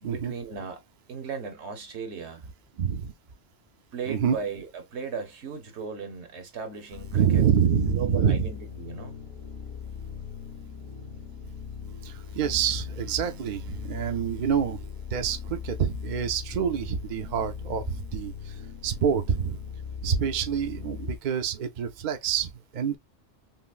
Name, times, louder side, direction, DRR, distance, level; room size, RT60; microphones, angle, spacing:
voice 1, 0.0-0.8 1.1-2.5 3.9-7.4 7.9-9.1, right 5 dB, 70° right, 1.2 m, -36 dB
voice 2, 2.8-3.1 4.1-4.4 7.1-8.5 12.0-14.8 15.1-19.6 20.0-23.0, right 7 dB, 55° right, 0.6 m, -27 dB
sound 1, 6.9-21.2, left 6 dB, 50° left, 1.1 m, -39 dB
5.6 x 2.0 x 2.4 m
omnidirectional pair, 1.2 m